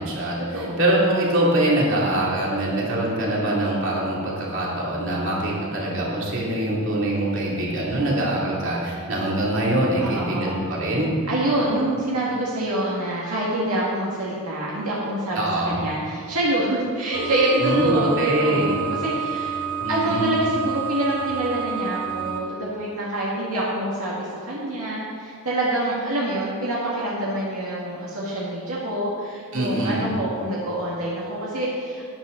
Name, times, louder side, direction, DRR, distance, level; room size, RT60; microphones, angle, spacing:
voice 1, 0.0-11.2 15.3-15.8 17.6-18.8 19.8-20.4 29.5-30.1, right 1 dB, 60° right, -4 dB, 2.7 m, -23 dB
voice 2, 0.5-0.9 10.0-10.5 11.3-18.7 19.0-19.6 19.9-32.1, right 1 dB, 80° right, -6 dB, 2.0 m, -26 dB
sound 1, 17.1-22.4, right 8 dB, 10° right, 1.1 m, -29 dB
12.0 x 10.5 x 3.9 m, 2.1 s
head